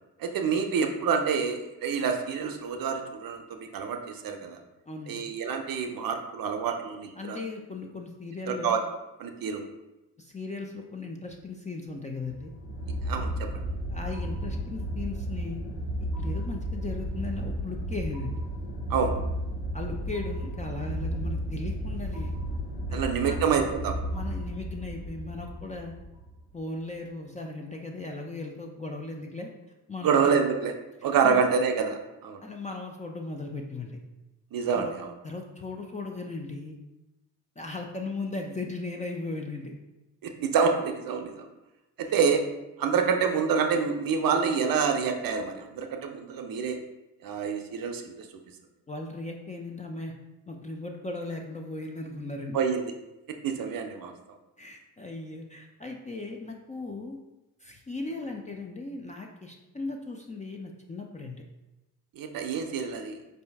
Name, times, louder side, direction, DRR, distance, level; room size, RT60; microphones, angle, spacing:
voice 1, 0.2-4.6 5.1-7.4 8.5-8.8 9.2-9.6 13.1-13.5 18.9-19.2 22.9-24.0 30.0-30.7 31.0-32.4 34.5-35.1 40.2-41.5 42.0-42.4 42.8-46.8 47.2-48.3 52.5-52.9 53.4-54.1 62.2-63.2, right 6 dB, 45° right, 5 dB, 0.6 m, -27 dB
voice 2, 4.9-5.2 7.2-8.7 10.2-12.5 13.9-15.6 16.0-18.4 19.7-22.3 22.9-23.4 24.1-25.9 26.5-29.5 29.9-30.2 31.2-31.4 32.4-34.0 34.7-34.9 35.2-36.8 37.6-39.8 42.0-42.2 48.9-50.1 50.5-52.6 54.6-57.2 57.6-61.4, left 3 dB, 15° left, 1 dB, 0.4 m, -37 dB
sound 1, 12.3-26.4, equal, 85° left, 1.0 m, -33 dB
4.4 x 2.6 x 3.4 m, 1.0 s
hypercardioid pair, 45°, 47 cm